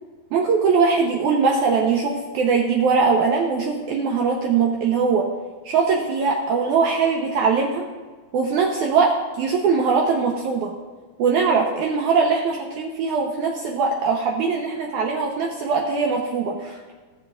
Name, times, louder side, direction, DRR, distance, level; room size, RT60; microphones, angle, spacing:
voice 1, 0.3-5.3 5.7-7.9 8.3-10.7 11.2-16.9, right 5 dB, 80° right, 0 dB, 1.8 m, -21 dB
18.0 x 7.5 x 2.4 m, 1.4 s
omnidirectional pair, 4.4 m